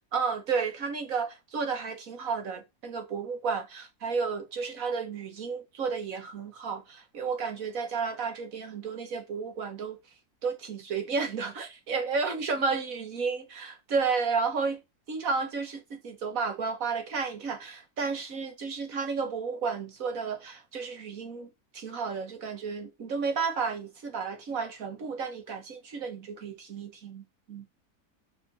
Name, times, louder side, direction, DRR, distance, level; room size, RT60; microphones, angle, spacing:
voice 1, 0.1-10.0 10.4-14.8 15.1-21.5 21.7-27.7, right 5 dB, 60° right, 1.7 m, -32 dB
5.7 x 4.2 x 5.4 m
omnidirectional pair, 1.7 m